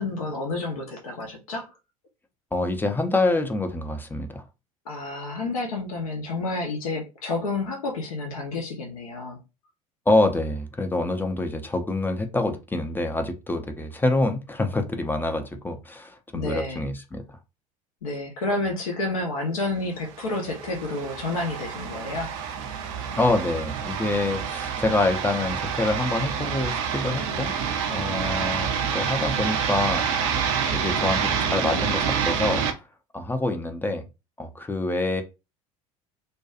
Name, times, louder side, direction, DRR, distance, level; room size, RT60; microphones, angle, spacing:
voice 1, 0.0-1.7 4.9-9.4 16.3-16.8 18.0-22.3, left 2 dB, 75° left, 0.7 m, -30 dB
voice 2, 2.5-4.4 10.1-17.4 23.2-27.5 27.9-30.1 30.7-32.6 33.1-34.0 34.4-35.2, left 2 dB, 10° left, 0.4 m, -26 dB
sound 1, 20.2-32.7, right 7 dB, 60° right, 0.5 m, -27 dB
2.6 x 2.2 x 2.4 m
figure-of-eight pair, 70°, 18 cm